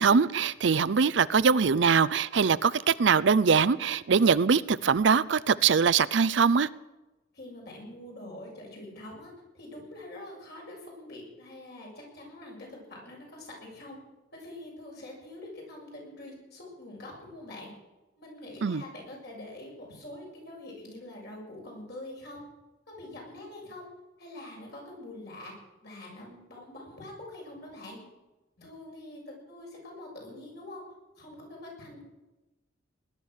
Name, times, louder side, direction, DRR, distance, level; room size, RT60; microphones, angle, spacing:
voice 1, 0.0-6.7 18.6-18.8, right 5 dB, 70° right, 0.5 m, -22 dB
voice 2, 7.3-14.0 14.3-17.7 18.2-22.5 22.9-23.9 24.2-25.5 25.8-28.0 28.6-30.8 31.2-32.1, left 1 dB, 60° left, 7.1 m, -45 dB
20.0 x 11.5 x 6.4 m
head